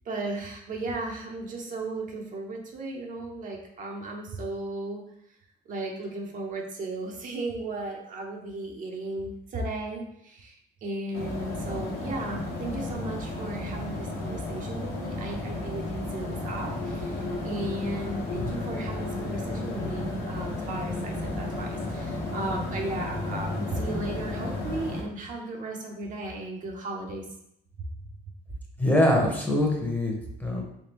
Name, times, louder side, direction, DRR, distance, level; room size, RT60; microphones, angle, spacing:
voice 1, 0.0-5.0 5.7-27.3 27.8-27.9, right 2 dB, 50° right, 1 dB, 0.7 m, -35 dB
sound 1, 11.1-25.0, left 2 dB, 75° left, 1.0 m, -33 dB
voice 2, 28.8-30.6, left 1 dB, 10° left, 0 dB, 0.8 m, -24 dB
3.5 x 3.3 x 2.9 m, 0.73 s
cardioid pair, 110°, 17 cm